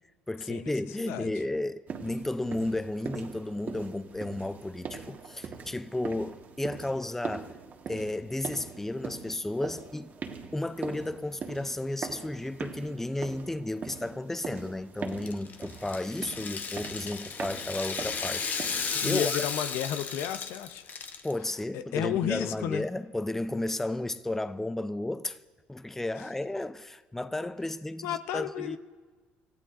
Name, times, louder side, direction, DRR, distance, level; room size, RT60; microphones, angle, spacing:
voice 1, 0.3-7.5 7.9-10.2 10.5-19.4 21.2-25.4 25.7-28.8, left 1 dB, 10° left, 0.5 m, -33 dB
voice 2, 1.0-1.3 19.0-20.8 21.7-22.9 28.0-28.8, left 10 dB, 75° left, 0.8 m, -32 dB
sound 1, 1.9-19.1, right 6 dB, 45° right, 1.5 m, -42 dB
Rattle (instrument), 15.1-21.3, left 6 dB, 40° left, 1.0 m, -34 dB
27.0 x 15.0 x 2.6 m
supercardioid pair, 80°, 4 cm